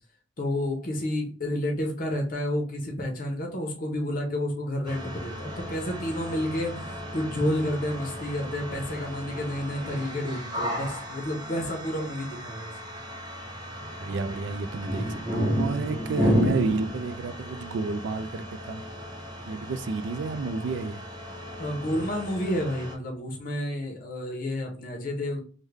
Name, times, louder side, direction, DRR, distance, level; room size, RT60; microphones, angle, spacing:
voice 1, 0.4-6.8 7.1-12.7 21.6-25.4, left 1 dB, 45° left, 0.8 m, -30 dB
sound 1, 4.8-22.9, equal, 25° right, 0.7 m, -33 dB
voice 2, 14.0-18.8 19.5-21.0, right 4 dB, 65° right, 0.3 m, -30 dB
3.5 x 2.2 x 3.3 m
head